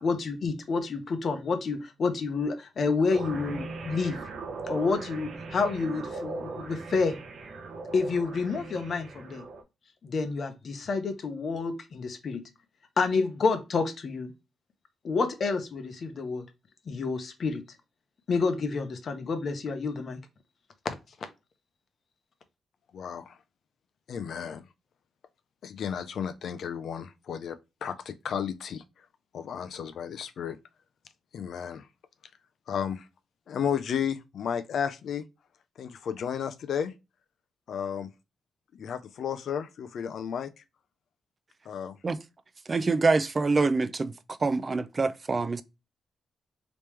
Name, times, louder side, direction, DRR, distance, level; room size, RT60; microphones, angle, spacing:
voice 1, 0.0-4.3 4.7-7.2 7.9-9.4 10.0-12.4 13.0-14.3 15.0-16.5 16.9-17.6 18.3-20.2, left 4 dB, 50° left, 0.7 m, -29 dB
sound 1, 3.1-9.6, right 3 dB, 65° right, 0.7 m, -39 dB
voice 2, 22.9-23.4 24.1-24.6 25.6-28.8 29.3-30.6 31.3-31.9 32.7-33.1 33.5-35.2 35.8-36.9 37.7-38.1 38.7-40.5 41.7-41.9, left 8 dB, 70° left, 0.3 m, -33 dB
voice 3, 42.7-44.1 44.4-45.6, right 3 dB, 30° right, 0.3 m, -25 dB
3.4 x 3.0 x 3.0 m
cardioid pair, 125°, 0 cm